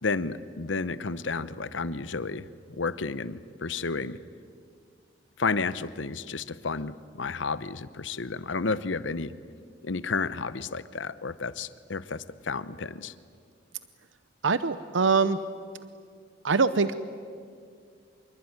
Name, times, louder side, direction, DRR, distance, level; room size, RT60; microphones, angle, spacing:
voice 1, 0.0-2.5 2.8-4.2 5.4-9.3 9.8-13.1, left 4 dB, 85° left, 15 dB, 0.9 m, -31 dB
voice 2, 14.4-15.4 16.4-17.0, right 4 dB, 85° right, 13 dB, 0.7 m, -23 dB
26.0 x 22.0 x 9.6 m, 2.2 s
head